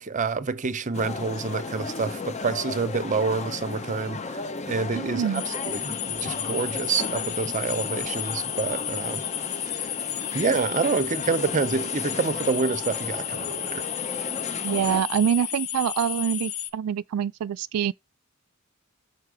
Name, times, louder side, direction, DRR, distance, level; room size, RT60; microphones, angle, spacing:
voice 1, 0.0-9.3 9.7-9.9 10.3-13.9, right 4 dB, 35° right, 0.6 m, -27 dB
sound 1, 0.9-15.0, left 3 dB, 30° left, 0.7 m, -35 dB
voice 2, 4.9-5.4 14.6-17.9, right 9 dB, 80° right, 0.3 m, -25 dB
sound 2, 5.3-16.7, left 11 dB, 85° left, 0.9 m, -32 dB
6.5 x 4.2 x 4.8 m
head